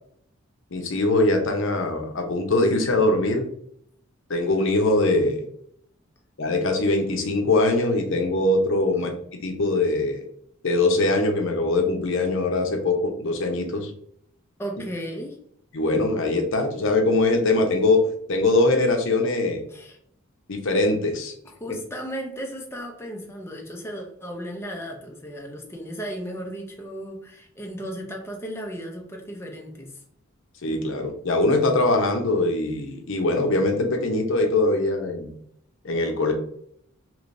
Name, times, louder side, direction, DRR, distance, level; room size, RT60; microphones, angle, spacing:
voice 1, 0.7-3.5 4.3-5.4 6.4-9.1 9.4-10.2 10.6-13.9 15.7-18.0 18.3-19.6 20.5-21.3 30.6-35.3 35.8-36.3, left 2 dB, 60° left, 4 dB, 0.7 m, -22 dB
voice 2, 14.6-15.4 19.7-20.0 21.6-29.9, equal, 10° left, 2 dB, 0.5 m, -35 dB
3.2 x 3.0 x 2.5 m, 0.67 s
head